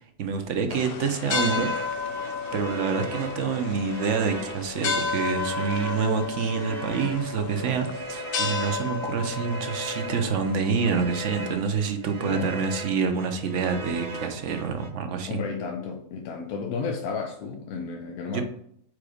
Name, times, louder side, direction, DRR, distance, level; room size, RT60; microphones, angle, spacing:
voice 1, 0.2-1.7 2.5-15.4 18.3-18.4, right 5 dB, 60° right, 6 dB, 1.0 m, -27 dB
sound 1, 0.7-11.6, left 5 dB, 55° left, 0.6 m, -32 dB
sound 2, 1.3-14.9, right 2 dB, 30° right, 0.9 m, -39 dB
voice 2, 12.2-12.6 15.3-18.4, left 5 dB, 85° left, 3 dB, 1.2 m, -32 dB
4.9 x 4.7 x 4.9 m, 0.68 s
omnidirectional pair, 1.5 m